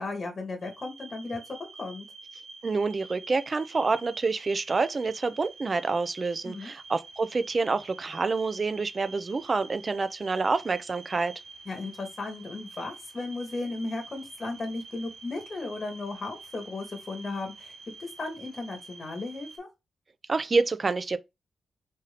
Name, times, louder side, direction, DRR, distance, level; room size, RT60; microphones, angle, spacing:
voice 1, 0.0-1.4 1.8-2.0 6.4-6.7 11.6-19.7, left 3 dB, 40° left, 1.3 m, -35 dB
sound 1, 0.6-19.6, right 4 dB, 90° right, 0.9 m, -48 dB
voice 2, 2.6-11.3 20.3-21.2, right 4 dB, 35° right, 0.4 m, -27 dB
4.0 x 2.7 x 3.2 m
wide cardioid pair, 125°, 0 cm